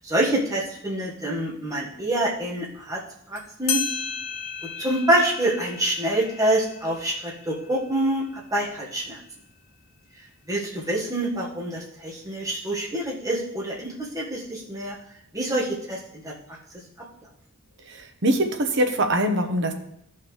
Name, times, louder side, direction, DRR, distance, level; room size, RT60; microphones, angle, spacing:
voice 1, 0.0-3.0 3.3-3.8 4.8-9.2 10.5-14.9 15.3-16.3, right 1 dB, 15° right, -4 dB, 1.7 m, -26 dB
sound 1, 3.4-3.5 3.7-8.8, left 6 dB, 80° left, 1.4 m, -34 dB
voice 2, 17.9-19.7, right 1 dB, 60° right, 5 dB, 1.0 m, -23 dB
14.0 x 5.7 x 3.3 m, 0.75 s
head